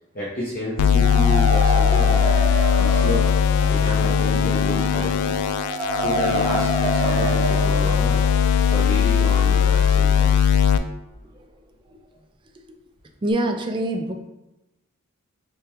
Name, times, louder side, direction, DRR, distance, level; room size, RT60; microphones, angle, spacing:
voice 1, 0.1-3.2 3.7-5.3 5.9-8.2 8.7-10.4, left 1 dB, 40° left, -6 dB, 0.7 m, -30 dB
sound 1, 0.7-10.6, right 2 dB, 80° right, 0.7 m, -29 dB
sound 2, 0.8-10.8, left 8 dB, 85° left, 0.3 m, -19 dB
Brass instrument, 3.5-7.9, left 2 dB, 25° left, 1.5 m, -39 dB
voice 2, 13.2-14.1, right 1 dB, 20° right, 4 dB, 0.3 m, -24 dB
4.9 x 2.2 x 2.9 m, 1.0 s
head